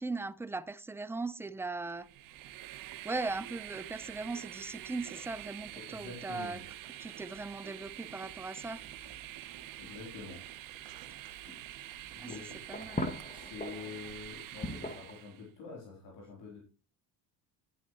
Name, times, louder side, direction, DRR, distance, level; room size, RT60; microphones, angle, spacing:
voice 1, 0.0-2.1 3.0-6.6 7.0-8.8 12.2-13.1, right 3 dB, 5° right, 0.5 m, -39 dB
Boiling, 1.9-14.6, right 9 dB, 75° right, 1.5 m, -56 dB
Train, 2.0-15.5, right 14 dB, 50° right, 0.6 m, -47 dB
voice 2, 5.7-6.6 9.5-10.4 12.1-12.6 13.3-16.6, left 5 dB, 70° left, 3.9 m, -47 dB
sound 1, 8.6-14.1 14.5-15.2, left 1 dB, 20° left, 1.4 m, -42 dB
10.5 x 8.6 x 3.2 m
supercardioid pair, 80°, 44 cm